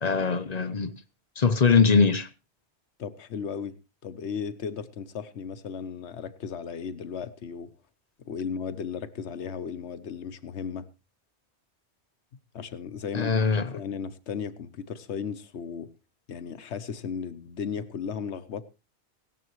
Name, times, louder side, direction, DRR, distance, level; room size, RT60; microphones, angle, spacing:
voice 1, 0.0-0.9 1.4-2.3 13.1-13.7, left 5 dB, 40° left, 0.8 m, -22 dB
voice 2, 3.0-3.8 4.0-7.7 8.3-10.9 12.3-15.9 16.3-18.6, left 6 dB, 75° left, 1.2 m, -35 dB
17.0 x 13.0 x 3.1 m
omnidirectional pair, 1.1 m